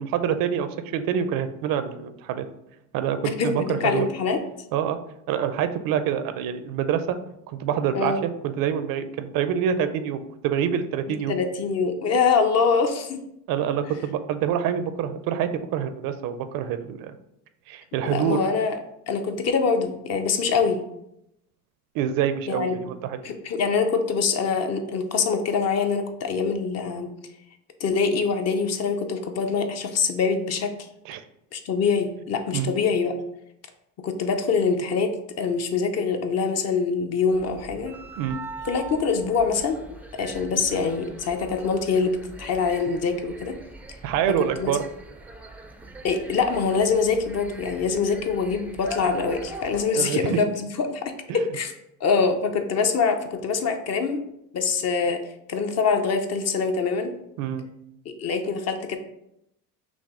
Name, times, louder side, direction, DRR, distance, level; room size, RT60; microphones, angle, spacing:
voice 1, 0.0-2.5 2.9-4.1 4.7-5.0 5.3-7.2 7.5-11.4 13.5-17.1 17.7-18.4 21.9-23.2 31.1-31.2 32.5-32.7 38.2-38.4 44.0-44.9 49.9-50.4 57.4-57.7, right 9 dB, 65° right, 10 dB, 0.5 m, -26 dB
voice 2, 3.2-4.4 7.9-8.2 11.3-13.2 18.0-18.8 19.1-20.8 22.5-22.8 23.2-27.1 27.8-30.7 31.5-33.1 34.0-35.1 35.4-37.9 38.6-39.8 40.1-43.6 44.6-44.7 46.0-51.0 51.5-51.7 52.0-54.2 54.5-55.2 55.5-57.1 58.2-59.0, left 5 dB, 45° left, 6 dB, 0.6 m, -24 dB
sound 1, 37.3-49.8, right 1 dB, 5° right, 0.3 m, -41 dB
6.0 x 2.0 x 3.6 m, 0.80 s
cardioid pair, 110°, 37 cm